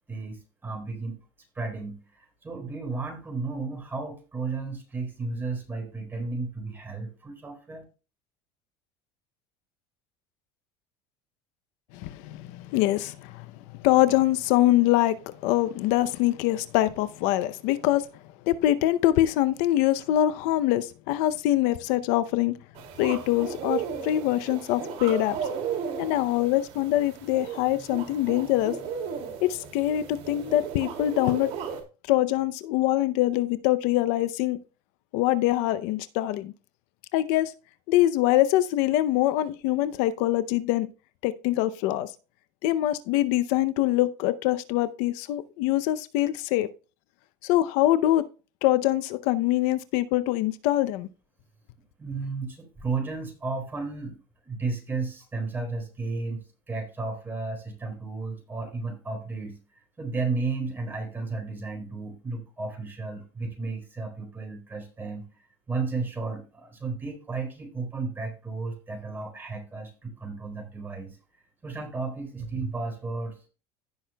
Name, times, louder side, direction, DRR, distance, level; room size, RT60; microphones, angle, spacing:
voice 1, 0.1-1.2 1.5-7.8 52.0-54.2 54.4-59.6 60.0-71.2 71.6-73.5, right 3 dB, 15° right, 4.3 m, -33 dB
voice 2, 11.9-13.5 13.8-18.0 18.5-22.6 23.0-25.4 26.0-28.8 29.5-31.5 32.1-34.6 35.1-36.5 37.1-37.5 37.9-40.9 41.2-42.1 42.6-46.7 47.4-48.2 48.6-51.1, left 14 dB, 70° left, 0.6 m, -24 dB
sound 1, 22.7-31.8, right 7 dB, 60° right, 2.6 m, -35 dB
16.0 x 6.3 x 2.3 m
cardioid pair, 135°, 13 cm